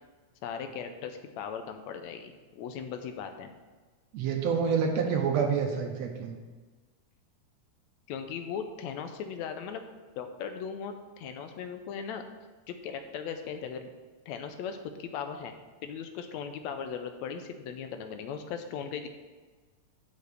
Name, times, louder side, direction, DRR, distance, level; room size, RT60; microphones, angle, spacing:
voice 1, 0.4-3.5 8.1-9.8 10.2-12.2 12.7-13.9 14.3-15.5 15.8-19.1, left 7 dB, 80° left, 7 dB, 1.9 m, -38 dB
voice 2, 4.1-6.3, right 6 dB, 70° right, 3 dB, 1.9 m, -27 dB
6.8 x 5.2 x 6.4 m, 1.3 s
omnidirectional pair, 3.3 m